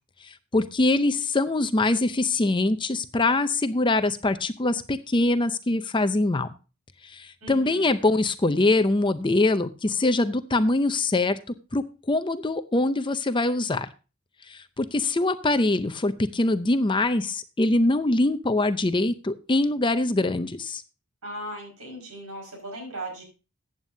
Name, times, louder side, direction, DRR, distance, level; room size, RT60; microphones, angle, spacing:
voice 1, 0.2-6.5 7.0-11.4 11.7-13.9 14.5-20.8, left 2 dB, 20° left, 11 dB, 0.5 m, -23 dB
voice 2, 7.4-8.0 21.2-23.2, right 1 dB, 80° right, 2 dB, 5.4 m, -37 dB
14.5 x 9.0 x 2.7 m, 0.31 s
head